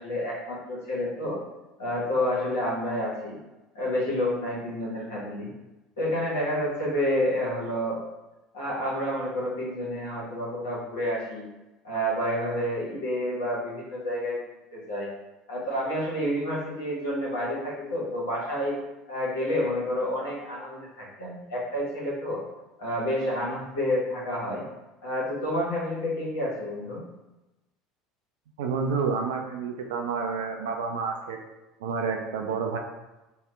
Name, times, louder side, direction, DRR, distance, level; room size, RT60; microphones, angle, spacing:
voice 1, 0.0-1.4 1.8-3.4 3.7-5.5 6.0-8.0 8.5-11.5 11.8-14.4 14.7-15.1 15.5-18.8 19.1-22.4 22.8-24.6 25.0-27.0, equal, 80° left, -6 dB, 1.2 m, -29 dB
voice 2, 28.6-31.4 31.8-32.8, right 5 dB, 75° right, 2 dB, 0.3 m, -29 dB
2.9 x 2.3 x 3.3 m, 1.0 s
hypercardioid pair, 70°, 0 cm